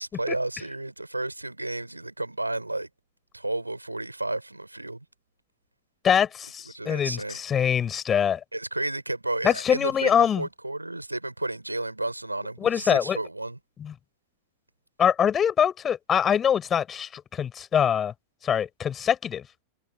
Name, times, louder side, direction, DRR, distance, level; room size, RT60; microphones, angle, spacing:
voice 1, 0.0-2.9 3.3-5.0 6.7-7.4 8.5-13.6, right 2 dB, 85° right, 5.2 m, -32 dB
voice 2, 6.0-8.4 9.4-10.5 12.6-13.2 13.8-13.9 15.0-18.1 18.4-19.4, left 8 dB, 25° left, 7.2 m, -24 dB
figure-of-eight pair, 90°, 0 cm